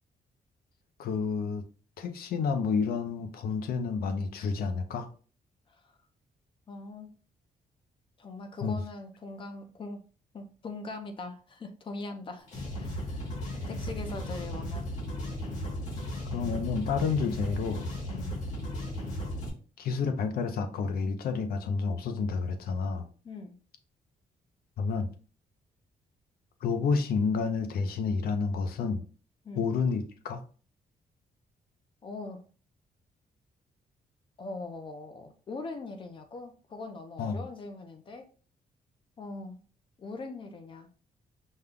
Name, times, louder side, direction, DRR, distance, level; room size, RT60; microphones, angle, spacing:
voice 1, 1.0-1.6 2.0-5.1 8.6-8.8 16.3-17.9 19.8-23.0 24.8-25.1 26.6-29.0 29.5-30.4 37.2-37.4, left 5 dB, 80° left, 0.7 m, -30 dB
voice 2, 6.7-7.1 8.2-10.1 10.3-12.5 12.8-13.3 13.7-14.9 18.1-18.3 23.2-23.6 29.4-29.7 32.0-32.4 34.4-38.3 39.2-39.6 40.0-40.9, left 3 dB, 35° left, 0.6 m, -41 dB
sound 1, 12.4-19.5, equal, 50° left, 1.6 m, -35 dB
5.4 x 2.3 x 3.6 m
cardioid pair, 165°, 15 cm